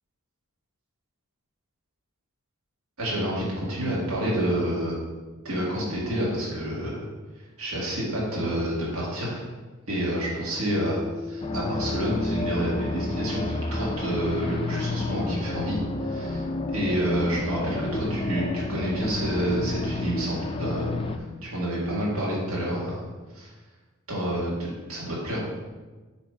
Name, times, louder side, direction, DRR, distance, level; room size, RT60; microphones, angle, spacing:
voice 1, 3.0-4.9 5.4-7.0 7.6-9.4 9.9-16.4 16.7-20.9 21.4-23.0 23.3-23.5 24.1-24.5 24.9-25.4, equal, 80° right, -6 dB, 1.8 m, -28 dB
sound 1, 10.8-19.6, left 4 dB, 45° right, 0.8 m, -41 dB
sound 2, 11.4-21.2, left 2 dB, 25° left, 0.3 m, -30 dB
7.1 x 3.0 x 4.9 m, 1.3 s
head